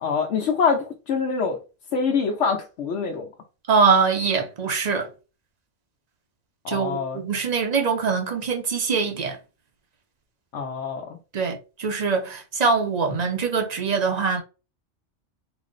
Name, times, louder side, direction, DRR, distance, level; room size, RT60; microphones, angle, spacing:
voice 1, 0.0-1.6 1.9-3.3 6.6-7.2 10.5-11.2, left 5 dB, 80° left, 1.0 m, -25 dB
voice 2, 3.7-5.1 6.7-9.4 11.3-14.4, right 5 dB, 45° right, 0.7 m, -23 dB
4.0 x 2.0 x 3.8 m
omnidirectional pair, 1.2 m